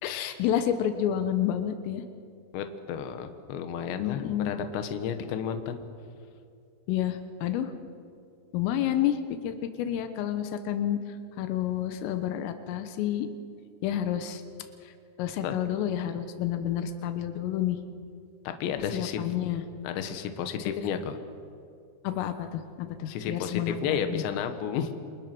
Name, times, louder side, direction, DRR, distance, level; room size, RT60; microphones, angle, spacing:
voice 1, 0.0-2.0 4.0-4.5 6.9-7.7 8.5-11.0 11.4-13.3 13.8-14.4 15.2-17.8 18.9-19.6 22.1-24.2, left 10 dB, 90° left, 9 dB, 3.8 m, -29 dB
voice 2, 2.5-5.8 15.4-15.6 18.4-19.2 19.8-21.2 23.1-24.9, left 8 dB, 70° left, 7 dB, 3.5 m, -32 dB
28.0 x 28.0 x 6.2 m, 2.4 s
omnidirectional pair, 5.7 m